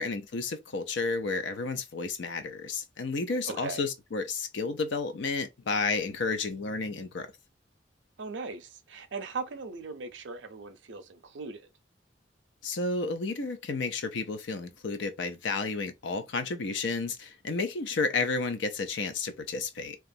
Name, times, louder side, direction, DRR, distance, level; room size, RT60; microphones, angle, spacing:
voice 1, 0.0-7.3 12.6-20.0, left 4 dB, 75° left, 0.5 m, -31 dB
voice 2, 3.5-3.8 8.2-11.7, right 4 dB, 75° right, 0.5 m, -39 dB
2.9 x 2.3 x 2.6 m
head